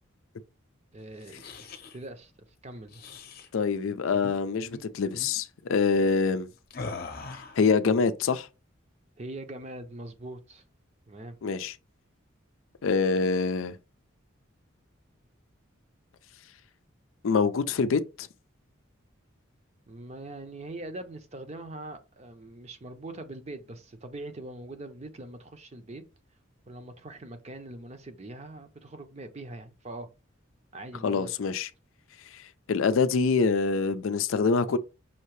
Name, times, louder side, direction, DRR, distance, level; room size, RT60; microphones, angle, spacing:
voice 1, 0.9-2.3 2.6-3.1 9.2-10.6 11.1-11.4 19.9-26.0 26.7-30.1 30.7-31.3, right 2 dB, 35° right, 0.6 m, -42 dB
sound 1, 1.1-2.0 2.9-3.5 4.1-4.4 4.6-4.8 5.1-5.4 6.7-7.7, left 3 dB, 50° left, 0.7 m, -41 dB
voice 2, 3.5-6.5 7.6-8.5 11.4-11.7 12.8-13.7 17.2-18.3 31.0-31.7 32.3-32.4 32.7-34.8, left 5 dB, 75° left, 0.4 m, -25 dB
5.7 x 2.7 x 3.1 m
head